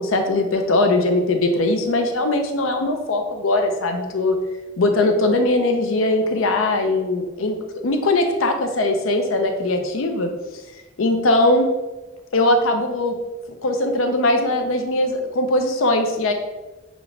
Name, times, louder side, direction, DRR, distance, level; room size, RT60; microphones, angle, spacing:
voice 1, 0.0-4.4 4.8-7.6 7.8-10.3 11.0-11.7 12.3-13.2 13.6-16.3, left 2 dB, 90° left, 5 dB, 0.6 m, -20 dB
6.1 x 2.5 x 3.1 m, 1.1 s
head